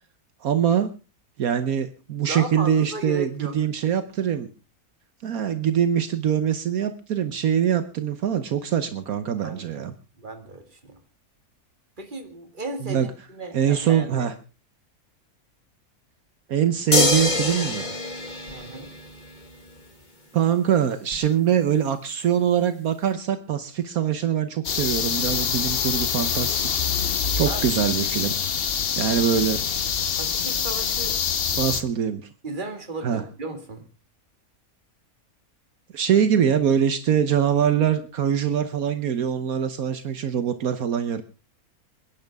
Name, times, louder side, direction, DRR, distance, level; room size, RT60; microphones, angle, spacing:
voice 1, 0.4-0.9 1.4-4.5 5.2-9.9 12.8-13.1 13.5-14.3 16.5-17.9 20.3-28.3 29.0-29.6 31.6-32.3 33.0-33.2 35.9-41.2, right 8 dB, 75° right, 10 dB, 1.4 m, -23 dB
voice 2, 2.2-3.6 9.4-9.8 10.2-11.0 12.0-14.3 18.5-18.9 27.4-27.8 30.1-31.2 32.4-33.8, right 2 dB, 35° right, 6 dB, 2.2 m, -35 dB
sound 1, 16.9-19.4 21.1-21.2, left 2 dB, 30° left, 2.0 m, -24 dB
sound 2, 24.6-31.8, left 7 dB, 45° left, 1.0 m, -25 dB
27.5 x 10.5 x 3.5 m, 0.32 s
omnidirectional pair, 1.5 m